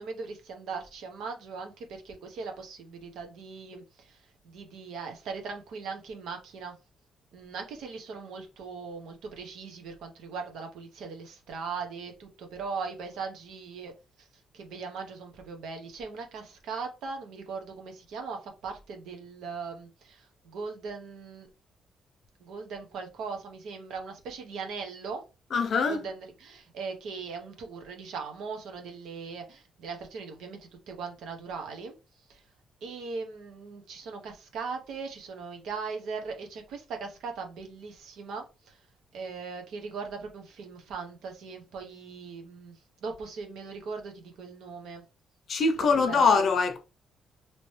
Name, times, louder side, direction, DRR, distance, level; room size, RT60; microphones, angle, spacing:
voice 1, 0.0-6.7 7.3-13.9 14.5-21.5 22.4-25.2 25.9-31.9 32.3-32.4 32.8-38.8 39.1-42.7 43.0-45.0 46.1-46.4, right 5 dB, 75° right, 1.0 m, -39 dB
voice 2, 25.5-26.0 45.5-46.8, left 4 dB, 40° left, 0.6 m, -23 dB
3.0 x 3.0 x 3.2 m
cardioid pair, 170°, 0 cm